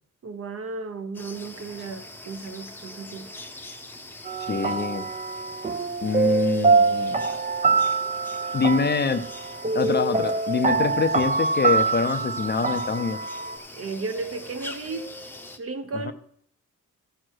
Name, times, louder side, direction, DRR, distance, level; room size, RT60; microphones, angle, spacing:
voice 1, 0.2-3.3 6.2-6.8 13.7-15.1 15.6-16.1, right 3 dB, 45° right, 0.9 m, -34 dB
sound 1, 1.1-15.6, left 2 dB, 5° left, 0.8 m, -43 dB
sound 2, 4.3-13.6, right 4 dB, 25° right, 0.5 m, -24 dB
voice 2, 4.4-5.1 6.0-7.2 8.5-9.2 9.7-13.2 16.0-16.1, left 5 dB, 30° left, 0.6 m, -25 dB
14.5 x 6.3 x 4.6 m
wide cardioid pair, 170°, 32 cm